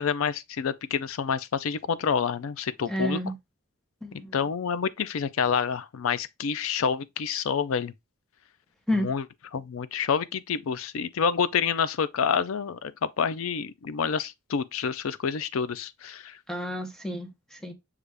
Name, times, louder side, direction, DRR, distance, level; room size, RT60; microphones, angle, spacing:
voice 1, 0.0-3.2 4.3-7.9 8.9-9.2 9.5-16.4, left 6 dB, 75° left, 0.4 m, -28 dB
voice 2, 2.9-3.4 4.0-4.4 8.9-9.1 16.5-17.7, equal, 5° left, 0.7 m, -30 dB
6.5 x 2.4 x 3.3 m
head